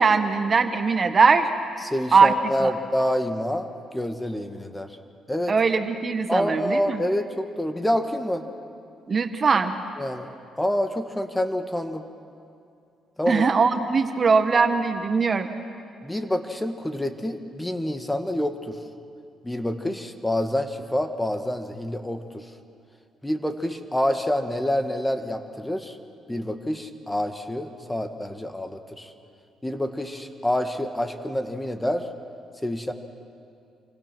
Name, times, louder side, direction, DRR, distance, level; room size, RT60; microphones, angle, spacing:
voice 1, 0.0-1.5 2.1-2.3 2.6-2.7 5.5-7.0 9.1-9.7 13.3-15.5, right 5 dB, 40° right, 8 dB, 1.4 m, -20 dB
voice 2, 1.8-5.0 5.3-5.5 6.3-8.5 10.0-10.3 10.6-12.1 13.2-13.4 16.0-18.8 19.4-22.5 23.2-26.0 26.3-29.1 29.6-32.1 32.6-32.9, left 1 dB, 10° left, 7 dB, 1.7 m, -27 dB
28.0 x 25.0 x 6.2 m, 2.4 s
cardioid pair, 90°, 0 cm